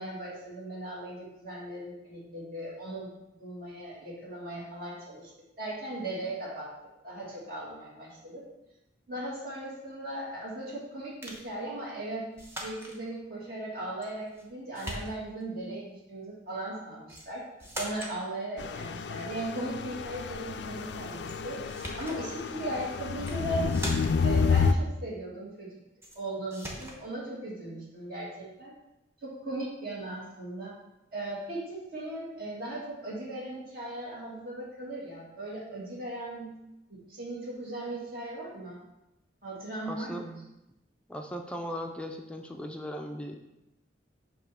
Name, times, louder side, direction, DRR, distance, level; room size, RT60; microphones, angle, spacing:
voice 1, 0.0-3.1 3.4-5.3 5.6-6.7 7.0-8.4 9.1-12.3 12.6-17.4 17.7-21.6 22.0-23.7 24.2-25.7 26.1-28.7 29.2-30.8 31.1-36.6 36.9-38.8 39.4-40.4, right 1 dB, 55° right, -6 dB, 2.3 m, -38 dB
sound 1, 11.2-11.5 12.4-13.0 14.0-14.5 14.7-15.4 17.1-17.3 17.6-18.2 21.3-21.4 21.7-22.2 23.1-23.4 23.7-24.3 26.0-26.2 26.5-27.0, equal, 15° right, 1.0 m, -40 dB
sound 2, 18.6-24.7, left 5 dB, 65° left, 0.4 m, -30 dB
voice 2, 39.9-40.2 41.1-43.5, equal, 5° left, 3 dB, 0.4 m, -38 dB
7.1 x 3.0 x 5.7 m, 0.90 s
head